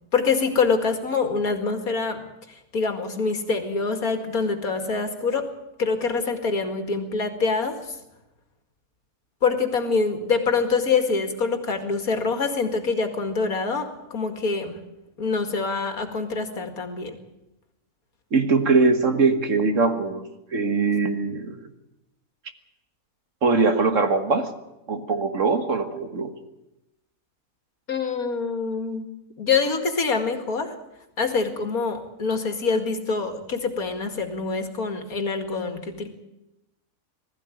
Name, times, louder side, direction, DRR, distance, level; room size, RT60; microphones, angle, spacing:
voice 1, 0.1-2.2 2.7-5.4 5.8-8.0 9.4-14.8 15.2-17.2 27.9-29.1 29.4-30.7 31.2-36.1, left 4 dB, 80° left, 6 dB, 2.7 m, -25 dB
voice 2, 18.3-21.7 23.4-24.5 24.9-26.3, right 4 dB, 60° right, 7 dB, 2.0 m, -22 dB
20.5 x 14.5 x 9.2 m, 0.93 s
omnidirectional pair, 1.5 m